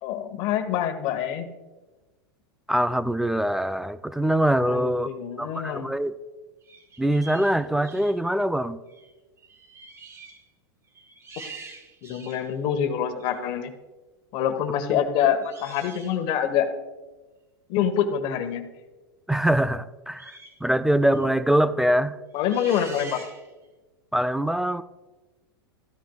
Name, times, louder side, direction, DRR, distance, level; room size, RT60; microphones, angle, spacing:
voice 1, 0.0-1.5 4.6-5.9 12.0-13.7 14.3-16.7 17.7-18.6 22.3-23.2, left 9 dB, 45° left, 7 dB, 1.2 m, -26 dB
voice 2, 2.7-5.1 5.4-6.1 7.0-8.8 14.9-15.0 19.3-22.2 24.1-24.8, right 1 dB, 5° right, 14 dB, 0.3 m, -23 dB
sound 1, 6.6-8.2 8.9-9.1 9.4-10.5 10.9-12.5 13.2-13.4 15.4-16.3 20.2-20.6 21.0-21.3 22.3-23.7, right 4 dB, 20° right, 1.1 m, -45 dB
14.5 x 10.5 x 2.3 m, 1.2 s
hypercardioid pair, 110°, 12 cm